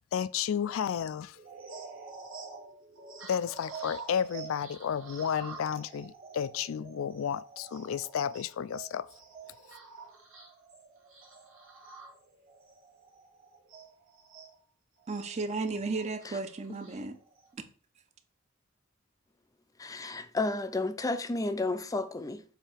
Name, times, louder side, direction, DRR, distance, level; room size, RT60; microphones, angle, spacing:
voice 1, 0.1-1.4 3.3-9.1, left 8 dB, 80° left, 0.3 m, -32 dB
sound 1, 1.3-14.5 15.0-17.5, right 4 dB, 80° right, 2.4 m, -48 dB
voice 2, 15.1-17.2, right 3 dB, 35° right, 0.6 m, -34 dB
voice 3, 19.8-22.4, left 2 dB, 15° left, 0.5 m, -32 dB
7.4 x 2.8 x 5.0 m
head